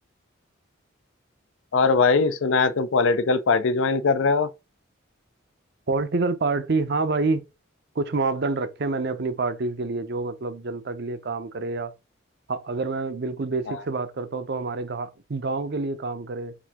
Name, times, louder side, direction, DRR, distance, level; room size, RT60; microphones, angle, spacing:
voice 1, 1.7-4.5 13.7-13.8, left 4 dB, 70° left, 0.5 m, -21 dB
voice 2, 5.9-7.5 8.0-11.9 12.5-16.5, right 3 dB, 55° right, 0.6 m, -27 dB
5.0 x 2.7 x 3.5 m
head